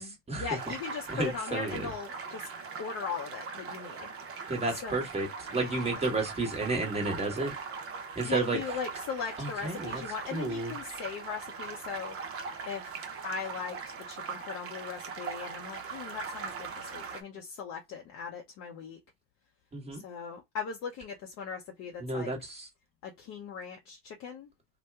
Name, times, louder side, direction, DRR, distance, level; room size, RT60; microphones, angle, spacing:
voice 1, 0.0-2.5 2.8-4.1 4.4-5.1 5.5-6.1 8.2-12.2 12.6-13.8 14.1-19.0 19.9-22.3 23.0-24.5, left 6 dB, 40° left, 0.7 m, -39 dB
sound 1, 0.6-17.2, right 5 dB, 35° right, 0.8 m, -41 dB
voice 2, 1.1-1.9 4.5-7.5 8.1-8.6 9.4-10.0 10.3-10.7 19.7-20.0 22.0-22.7, right 2 dB, 15° right, 1.3 m, -31 dB
2.9 x 2.2 x 3.4 m
hypercardioid pair, 100°, 41 cm